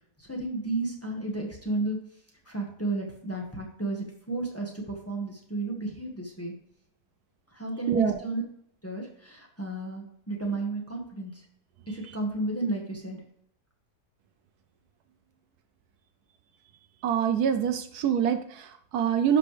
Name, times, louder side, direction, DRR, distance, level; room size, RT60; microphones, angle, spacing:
voice 1, 0.2-2.0 2.5-6.5 7.5-8.4 8.8-11.4 11.9-13.2, right 2 dB, 10° left, -1 dB, 1.6 m, -33 dB
voice 2, 7.9-8.2 17.0-19.4, right 8 dB, 75° right, 9 dB, 1.2 m, -25 dB
11.5 x 5.5 x 3.4 m, 0.71 s
omnidirectional pair, 1.7 m